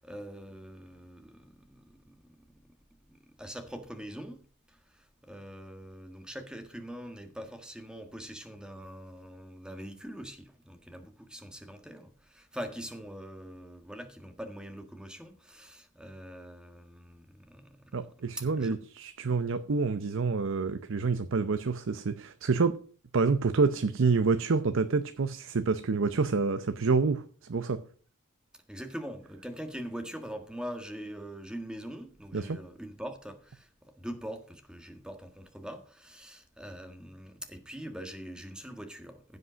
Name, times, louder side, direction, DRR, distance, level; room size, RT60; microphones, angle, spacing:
voice 1, 0.0-2.7 3.1-4.4 4.7-18.8 28.5-39.4, equal, 5° right, 1.5 m, -43 dB
voice 2, 17.9-22.8 23.1-27.2 27.5-27.8 32.3-32.6, right 4 dB, 60° right, 0.6 m, -27 dB
15.5 x 5.4 x 6.2 m
head